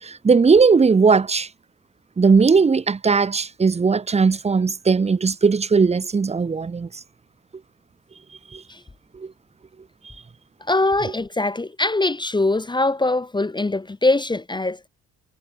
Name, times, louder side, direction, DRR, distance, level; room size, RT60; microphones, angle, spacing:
voice 1, 0.0-1.5 2.2-6.9 8.5-8.6 9.1-9.3 11.0-11.1, right 5 dB, 20° right, 0.7 m, -18 dB
voice 2, 10.7-14.9, left 2 dB, 15° left, 0.9 m, -22 dB
cardioid pair, 90°, 30 cm